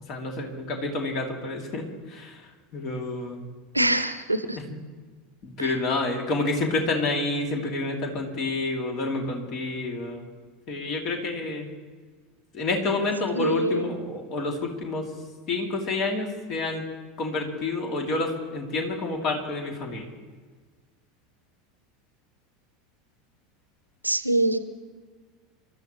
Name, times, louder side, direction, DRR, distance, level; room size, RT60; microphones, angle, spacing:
voice 1, 0.1-1.8 2.1-2.3 2.7-3.4 5.4-10.2 10.7-11.7 12.5-15.1 15.5-16.8 17.2-20.1, left 3 dB, 45° left, 1 dB, 3.0 m, -28 dB
voice 2, 3.7-4.6 5.6-5.7 13.3-13.9 24.0-24.6, right 1 dB, 85° right, 12 dB, 0.9 m, -24 dB
28.5 x 13.5 x 3.3 m, 1.4 s
figure-of-eight pair, 75°, 0 cm